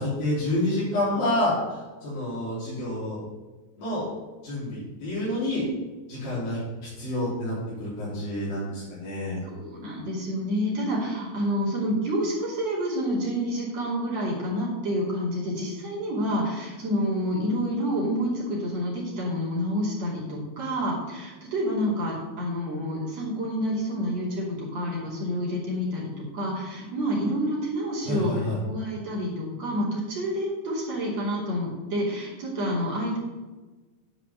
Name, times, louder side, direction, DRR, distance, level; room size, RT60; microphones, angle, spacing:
voice 1, 0.0-3.2 3.8-4.1 4.4-5.6 6.1-6.6 7.0-9.4 28.1-28.6, left 1 dB, 75° left, -9 dB, 5.0 m, -28 dB
voice 2, 9.4-33.2, equal, 50° right, -5 dB, 3.9 m, -28 dB
10.5 x 4.9 x 6.9 m, 1.2 s
omnidirectional pair, 4.1 m